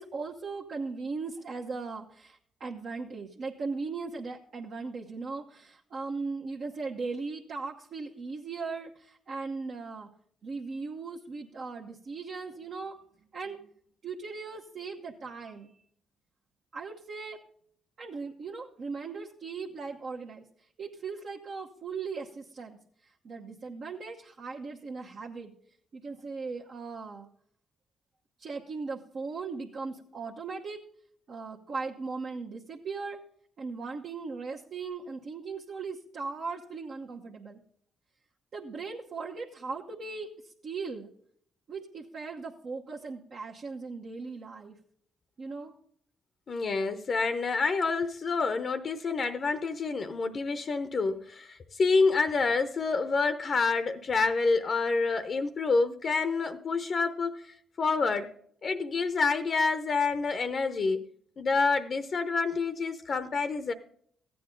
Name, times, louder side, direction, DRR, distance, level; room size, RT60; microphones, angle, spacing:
voice 1, 0.0-10.1 10.4-13.0 13.3-13.7 14.0-15.7 16.7-17.4 18.0-20.4 20.8-22.8 23.0-25.5 25.9-27.3 28.4-30.8 31.3-33.2 33.6-37.6 38.5-40.3 40.6-41.1 41.7-44.8 45.4-45.7, right 4 dB, 65° right, -2 dB, 1.0 m, -38 dB
voice 2, 46.5-57.4 57.8-58.3 58.6-61.1 61.4-63.7, left 4 dB, 55° left, 10 dB, 0.7 m, -28 dB
14.5 x 8.5 x 3.8 m, 0.62 s
supercardioid pair, 60°, 0 cm